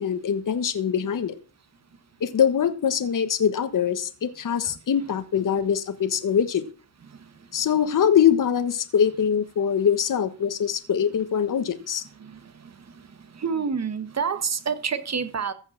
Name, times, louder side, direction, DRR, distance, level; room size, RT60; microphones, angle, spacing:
voice 1, 0.0-1.4 2.2-6.7 7.5-12.0, left 8 dB, 50° left, 1.3 m, -23 dB
voice 2, 12.2-12.7 13.3-15.5, right 6 dB, 40° right, 1.5 m, -28 dB
15.0 x 5.6 x 7.2 m
cardioid pair, 95°, 39 cm